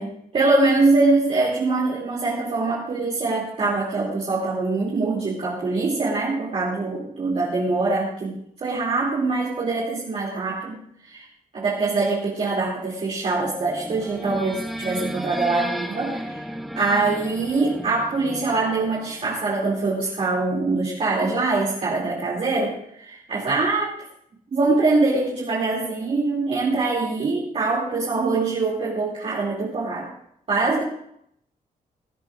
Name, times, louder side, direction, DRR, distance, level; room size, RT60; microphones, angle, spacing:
voice 1, 0.0-11.2 11.5-16.4 16.8-23.9 24.5-30.1 30.5-30.8, right 3 dB, 45° right, -5 dB, 2.6 m, -23 dB
sound 1, 13.3-19.5, equal, ahead, 0.8 m, -34 dB
20.0 x 13.5 x 2.5 m, 0.72 s
wide cardioid pair, 165°, 15 cm